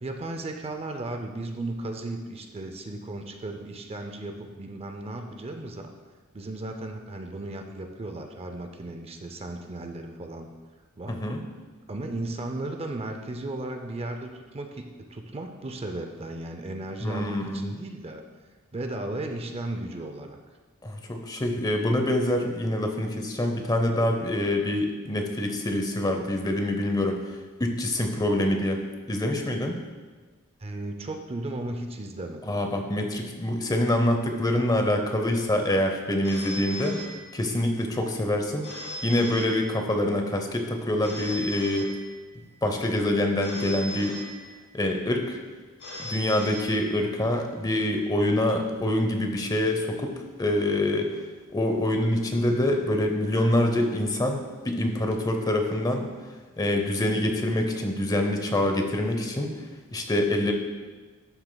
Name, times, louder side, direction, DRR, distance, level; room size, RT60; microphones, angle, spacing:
voice 1, 0.0-5.9 6.3-10.5 11.0-11.2 11.9-14.8 15.1-18.2 18.7-20.4 30.6-32.5, right 2 dB, 25° right, 5 dB, 0.5 m, -35 dB
voice 2, 11.1-11.4 17.0-17.7 20.8-27.2 27.6-28.8 29.1-29.8 32.5-37.0 37.3-38.6 39.0-41.9 42.6-44.2 44.7-45.4 46.0-50.1 50.4-51.1 51.5-56.1 56.6-59.5 59.9-60.5, left 1 dB, 20° left, 4 dB, 0.8 m, -25 dB
Telephone, 36.2-37.7 38.6-40.1 41.0-42.5 43.4-44.9 45.8-47.3, equal, 60° left, 2.4 m, -39 dB
12.0 x 6.5 x 2.3 m, 1.4 s
head